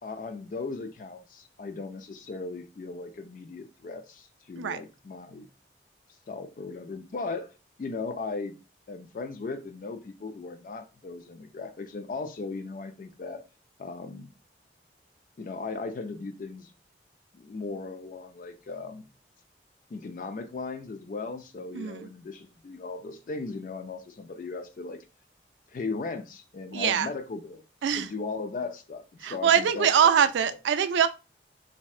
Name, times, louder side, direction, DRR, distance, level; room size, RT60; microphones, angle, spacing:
voice 1, 0.0-5.5 6.3-7.5 7.8-8.6 8.9-13.4 13.8-14.3 15.4-16.7 17.3-19.0 19.9-25.0 25.7-27.6 27.9-30.1, left 3 dB, 45° left, 0.3 m, -37 dB
voice 2, 21.7-22.1 26.7-27.1 27.8-28.1 29.2-31.1, right 8 dB, 90° right, 0.3 m, -23 dB
3.1 x 2.7 x 2.4 m
head